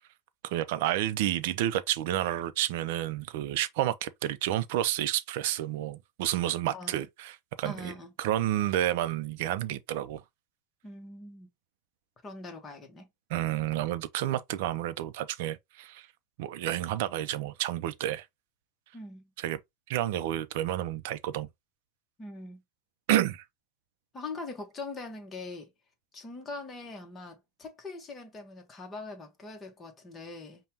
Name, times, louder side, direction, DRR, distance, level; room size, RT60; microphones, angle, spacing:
voice 1, 0.4-10.2 13.3-16.1 16.4-18.2 19.4-19.6 19.9-21.5 23.1-23.4, right 13 dB, 60° right, 0.5 m, -30 dB
voice 2, 7.6-8.1 10.8-11.5 12.2-13.1 18.9-19.3 22.2-22.6 24.1-25.7 26.1-30.6, left 3 dB, 15° left, 1.1 m, -42 dB
5.4 x 2.2 x 2.8 m
supercardioid pair, 160°, 0 cm